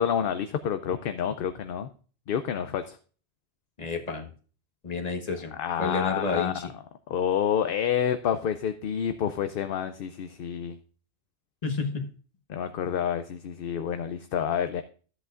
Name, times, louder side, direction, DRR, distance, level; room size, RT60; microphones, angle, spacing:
voice 1, 0.0-1.9 2.3-3.0 5.5-6.5 7.1-10.8 12.5-14.8, left 8 dB, 65° left, 9 dB, 0.7 m, -28 dB
voice 2, 3.8-4.3 4.8-5.5 5.8-6.7 11.6-12.1, left 4 dB, 40° left, 4 dB, 1.2 m, -30 dB
13.0 x 8.1 x 2.4 m, 0.40 s
omnidirectional pair, 1.1 m